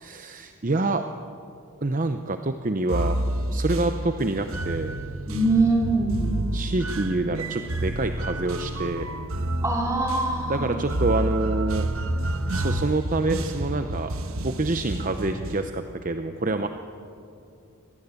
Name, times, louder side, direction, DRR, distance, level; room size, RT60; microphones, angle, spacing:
voice 1, 0.0-1.0 1.8-3.2 3.5-5.0 6.5-9.1 10.5-11.9 12.5-14.1 14.4-16.7, right 2 dB, 35° right, 7 dB, 0.8 m, -27 dB
sound 1, 2.9-15.7, right 1 dB, 70° right, 1.3 m, -29 dB
voice 2, 5.3-6.3 9.6-10.7, right 2 dB, 15° right, -2 dB, 4.4 m, -23 dB
24.5 x 18.5 x 8.4 m, 2.5 s
head